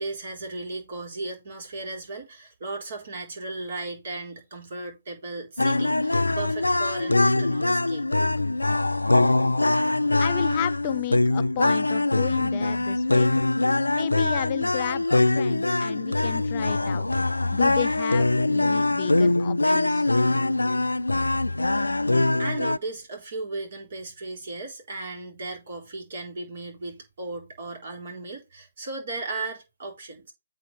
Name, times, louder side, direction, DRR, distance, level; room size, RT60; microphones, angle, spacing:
voice 1, 0.0-8.1 22.4-30.3, right 3 dB, 50° right, 4.3 m, -36 dB
sound 1, 5.6-22.8, left 2 dB, 85° left, 0.5 m, -23 dB
voice 2, 10.2-13.3 13.9-17.0 17.5-20.1, left 12 dB, 30° left, 0.5 m, -33 dB
8.5 x 4.1 x 6.3 m
figure-of-eight pair, 140°, 0 cm